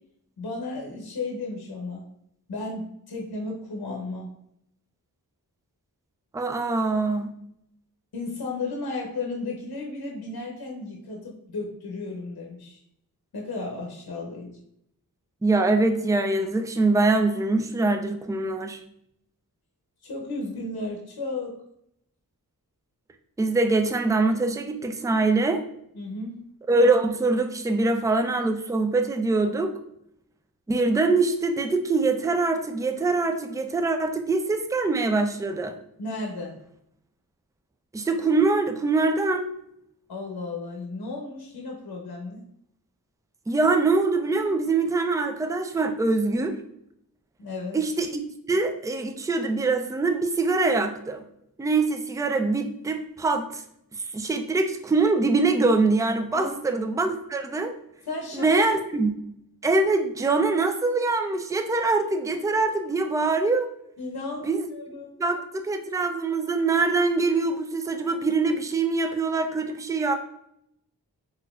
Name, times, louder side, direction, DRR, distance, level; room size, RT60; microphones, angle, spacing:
voice 1, 0.4-2.0 2.5-4.3 8.1-12.8 13.3-14.6 20.0-21.6 26.0-26.4 36.0-36.6 40.1-42.4 47.4-47.8 56.3-56.6 58.1-58.5 64.0-65.1, left 3 dB, 70° left, 0 dB, 0.7 m, -34 dB
voice 2, 6.3-7.3 15.4-18.8 23.4-25.6 26.7-29.7 30.7-35.8 37.9-39.5 43.5-46.6 47.7-48.2 48.5-51.2 51.6-53.6 53.9-57.7 58.3-59.1 59.6-63.7 64.4-64.7 65.2-70.1, right 3 dB, 10° right, 7 dB, 0.4 m, -23 dB
4.0 x 2.6 x 2.3 m, 0.75 s
cardioid pair, 40°, 38 cm